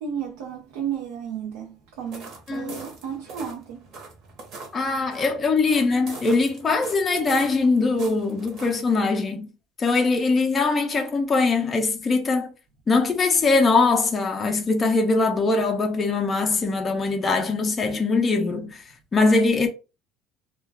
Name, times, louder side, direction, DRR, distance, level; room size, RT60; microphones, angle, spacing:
voice 1, 0.0-3.9, right 8 dB, 90° right, 0.6 m, -33 dB
sound 1, 2.0-9.0, right 3 dB, 40° right, 0.8 m, -43 dB
voice 2, 2.5-2.8 4.7-9.5 9.8-12.5 12.9-18.8 19.1-19.7, left 3 dB, 15° left, 0.4 m, -22 dB
2.2 x 2.2 x 3.3 m
cardioid pair, 170°, 0 cm